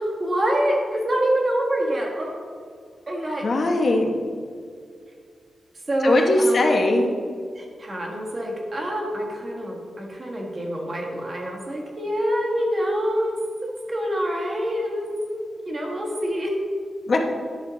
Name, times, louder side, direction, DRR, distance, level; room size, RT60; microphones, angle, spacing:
voice 1, 0.0-2.4 3.1-3.5 5.9-6.7 7.5-16.6, equal, 30° right, -1 dB, 1.4 m, -26 dB
voice 2, 3.4-4.1 6.0-7.1 17.1-17.2, left 2 dB, 45° left, 2 dB, 1.0 m, -20 dB
10.5 x 6.3 x 3.9 m, 2.1 s
wide cardioid pair, 170°, 0 cm